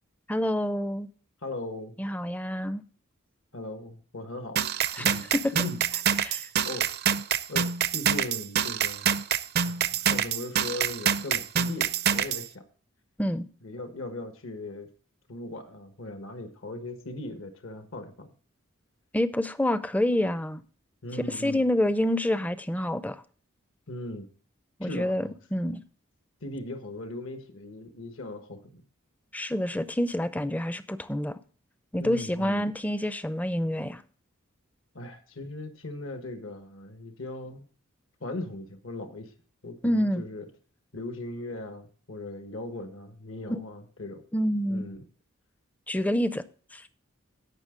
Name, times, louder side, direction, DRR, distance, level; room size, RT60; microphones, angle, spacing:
voice 1, 0.3-1.1 2.0-2.8 4.9-5.5 6.2-6.5 13.2-13.5 19.1-20.6 21.3-23.2 24.8-25.8 29.3-31.4 31.9-34.0 39.8-40.2 43.5-43.6 44.3-44.9 45.9-46.4 46.7-46.8, left 1 dB, 5° left, 0.5 m, -27 dB
voice 2, 1.4-2.0 3.5-4.7 5.0-5.8 6.2-6.4 6.6-6.9 7.5-9.2 9.6-12.6 13.6-14.9 15.3-18.3 21.0-21.6 23.9-24.3 24.8-25.3 26.4-28.8 32.0-32.7 34.9-37.6 38.2-39.3 39.6-40.5 40.9-44.2 44.7-45.0, left 2 dB, 70° left, 1.3 m, -39 dB
sound 1, 4.6-12.5, right 8 dB, 50° right, 0.5 m, -26 dB
16.5 x 5.9 x 3.7 m
head